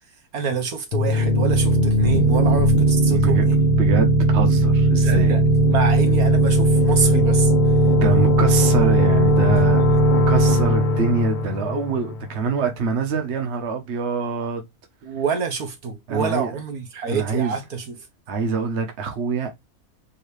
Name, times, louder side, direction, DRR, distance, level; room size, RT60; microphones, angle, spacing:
voice 1, 0.3-3.6 5.0-5.4 5.7-7.5 15.0-18.1, right 6 dB, 70° right, 1.6 m, -27 dB
sound 1, 0.9-12.5, right 1 dB, 75° left, 1.3 m, -18 dB
voice 2, 3.1-3.4 3.8-5.4 7.8-9.8 10.3-14.6 16.1-16.5 17.1-17.5 18.3-19.5, right 4 dB, 50° right, 1.2 m, -25 dB
4.6 x 2.8 x 3.3 m
omnidirectional pair, 1.6 m